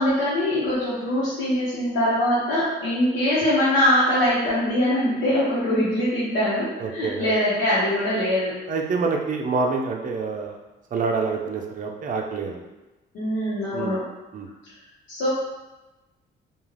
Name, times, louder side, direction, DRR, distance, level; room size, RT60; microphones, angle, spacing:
voice 1, 0.0-8.5 13.1-14.0 15.1-15.3, left 1 dB, 90° left, -12 dB, 1.0 m, -22 dB
voice 2, 6.8-7.3 8.7-10.5 10.9-12.6 13.7-14.0 14.3-14.5, right 4 dB, 40° right, 1 dB, 0.5 m, -26 dB
2.4 x 2.3 x 3.2 m, 1.1 s
cardioid pair, 90°, 20 cm